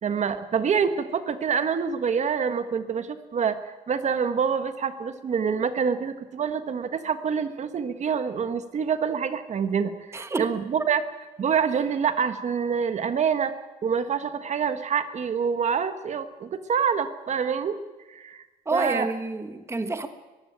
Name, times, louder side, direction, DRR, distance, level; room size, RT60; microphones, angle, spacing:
voice 1, 0.0-11.0 11.4-13.5 13.8-17.8 18.1-18.4 18.7-19.1, right 6 dB, 45° right, 10 dB, 1.5 m, -26 dB
voice 2, 10.1-10.5 18.7-20.1, right 3 dB, 15° right, 9 dB, 1.4 m, -28 dB
21.5 x 15.0 x 8.9 m, 1.2 s
cardioid pair, 110°, 17 cm